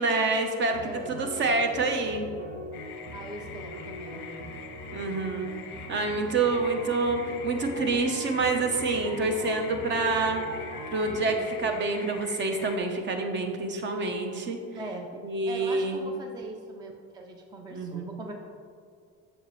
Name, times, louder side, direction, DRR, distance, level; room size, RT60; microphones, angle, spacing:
voice 1, 0.0-2.3 4.9-5.5 5.9-10.4 10.9-14.6 15.2-16.0 17.7-18.1, right 3 dB, 40° right, 5 dB, 0.8 m, -27 dB
sound 1, 0.7-13.2, equal, 90° right, 1.5 m, -41 dB
voice 2, 0.8-1.5 3.1-4.5 14.7-15.1 15.5-18.3, right 1 dB, 15° right, 3 dB, 0.4 m, -41 dB
sound 2, 2.7-12.8, left 7 dB, 40° left, 0.6 m, -45 dB
7.8 x 6.6 x 3.1 m, 2.3 s
cardioid pair, 160°, 30 cm